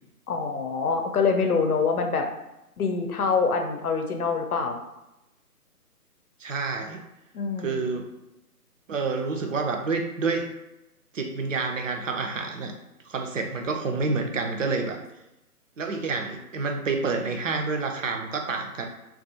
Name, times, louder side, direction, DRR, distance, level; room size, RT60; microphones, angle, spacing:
voice 1, 0.3-2.3 2.8-4.8 7.3-7.9, left 5 dB, 70° left, 4 dB, 0.6 m, -25 dB
voice 2, 6.4-7.0 7.6-8.1 8.9-10.5 11.1-12.7 13.1-15.0 15.8-18.9, right 4 dB, 55° right, 4 dB, 0.5 m, -28 dB
2.3 x 2.3 x 2.7 m, 0.91 s
figure-of-eight pair, 150°, 47 cm